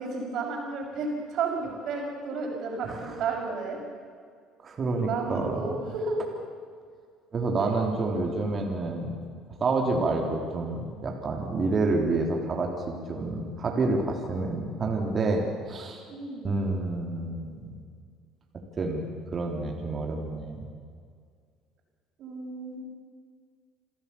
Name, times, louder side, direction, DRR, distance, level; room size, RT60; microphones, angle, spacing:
voice 1, 0.0-3.8 4.8-6.3 7.6-7.8 8.1-8.4 16.1-16.5 22.2-22.8, right 4 dB, 60° right, 0 dB, 6.4 m, -32 dB
voice 2, 2.8-3.2 4.6-5.6 7.3-9.2 9.6-15.4 15.7-16.0 16.4-17.7 18.8-20.6, right 3 dB, 40° right, 1 dB, 3.9 m, -28 dB
28.5 x 13.5 x 7.2 m, 2.1 s
hypercardioid pair, 60°, 0 cm